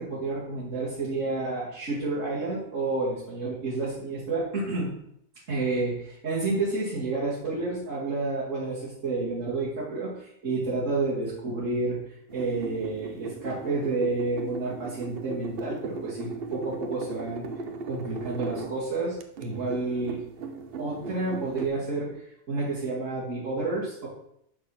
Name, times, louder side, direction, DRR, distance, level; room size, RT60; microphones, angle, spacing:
voice 1, 0.0-4.9 5.5-12.0 12.3-17.4 17.8-20.2 20.8-24.1, right 3 dB, 70° right, -8 dB, 2.8 m, -30 dB
sound 1, 12.3-18.8 19.2-21.7, right 3 dB, 50° right, 0.9 m, -37 dB
6.5 x 6.4 x 5.7 m, 0.73 s
omnidirectional pair, 1.4 m